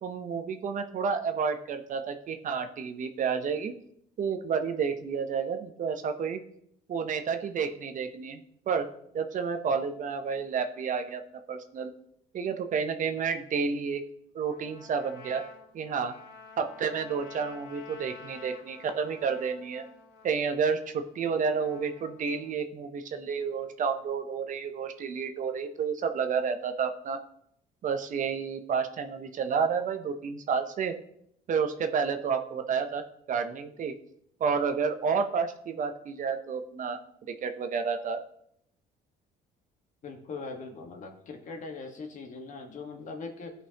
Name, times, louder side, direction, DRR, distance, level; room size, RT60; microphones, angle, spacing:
voice 1, 0.0-3.7 4.2-6.4 6.9-8.9 9.1-11.2 11.5-11.9 12.3-14.0 14.3-15.4 15.7-16.1 16.6-19.8 20.2-27.2 27.8-30.9 31.5-33.9 34.4-37.0 37.4-38.2, right 6 dB, 50° right, 8 dB, 0.8 m, -30 dB
Trumpet, 14.5-22.6, left 5 dB, 75° left, 1.0 m, -50 dB
voice 2, 40.0-43.5, left 4 dB, 50° left, 3 dB, 1.5 m, -40 dB
15.0 x 5.4 x 2.9 m, 0.71 s
cardioid pair, 110°, 17 cm